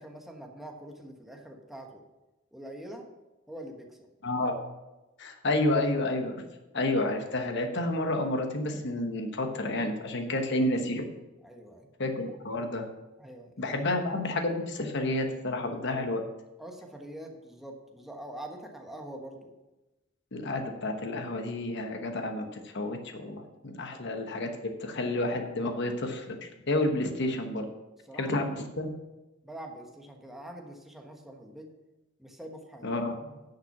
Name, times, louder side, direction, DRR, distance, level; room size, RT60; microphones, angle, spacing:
voice 1, 0.0-2.0 2.5-3.0 3.5-4.1 11.4-11.9 13.2-13.9 16.6-19.5 23.9-24.1 28.1-28.4 29.4-31.7 32.2-32.9 33.2-33.4, right 1 dB, ahead, 1 dB, 1.2 m, -44 dB
voice 2, 4.2-4.5 5.2-6.4 6.7-11.0 12.0-12.9 13.6-16.2 20.3-24.5 24.8-27.7 28.1-28.9 32.8-33.1, left 1 dB, 60° left, 5 dB, 1.1 m, -30 dB
10.5 x 5.8 x 5.8 m, 1.0 s
head